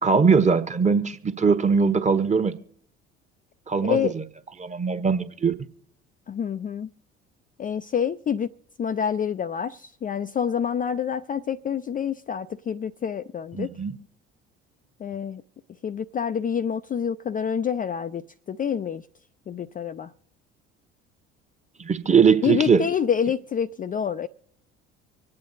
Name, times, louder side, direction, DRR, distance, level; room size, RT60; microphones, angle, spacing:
voice 1, 0.0-2.6 3.7-4.0 4.6-5.5 13.5-14.0 21.8-22.8, right 5 dB, 20° right, 1.2 m, -20 dB
voice 2, 3.8-4.1 6.3-6.9 7.6-8.5 8.8-13.7 15.0-15.4 15.8-19.0 19.5-20.1 22.4-24.3, left 8 dB, 25° left, 0.5 m, -27 dB
25.0 x 8.8 x 4.0 m
figure-of-eight pair, 55°, 33 cm